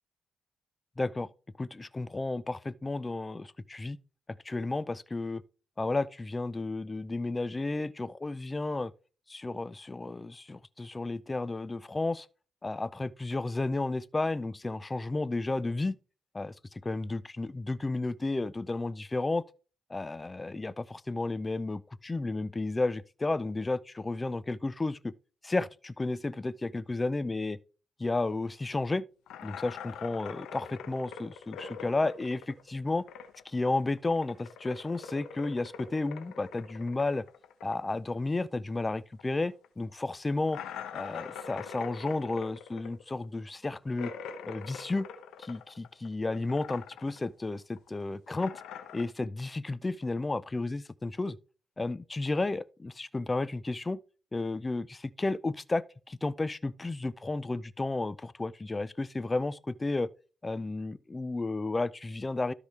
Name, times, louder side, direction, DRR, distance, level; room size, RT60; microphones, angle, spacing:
voice 1, 1.0-1.3 1.6-4.0 4.4-5.4 5.8-8.9 9.3-12.3 12.6-16.0 16.3-16.5 16.8-19.4 19.9-25.1 25.4-27.6 28.0-29.0 29.4-33.0 33.5-37.2 37.6-40.6 40.9-44.1 44.4-45.1 45.4-48.5 48.9-51.4 51.8-54.0 54.3-60.1 60.4-62.5, left 2 dB, 25° left, 0.5 m, -32 dB
sound 1, 29.3-33.6 33.8-38.9 39.1-39.2 39.6-39.7 40.5-46.1 46.3-47.3 47.5-49.0, left 7 dB, 90° left, 1.1 m, -44 dB
13.0 x 5.0 x 3.4 m
cardioid pair, 65°, 0 cm